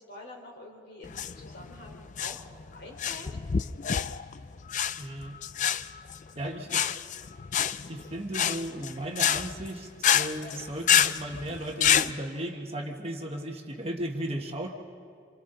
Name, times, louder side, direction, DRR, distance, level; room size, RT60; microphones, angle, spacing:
voice 1, 0.0-2.4 2.7-3.4, left 2 dB, 60° left, -1 dB, 4.0 m, -46 dB
sound 1, 1.0-12.1, left 9 dB, 40° left, 0.4 m, -28 dB
voice 2, 5.0-5.3 6.3-7.0 7.9-14.7, right 1 dB, 30° right, 2 dB, 1.4 m, -36 dB
28.0 x 27.5 x 3.9 m, 2.2 s
head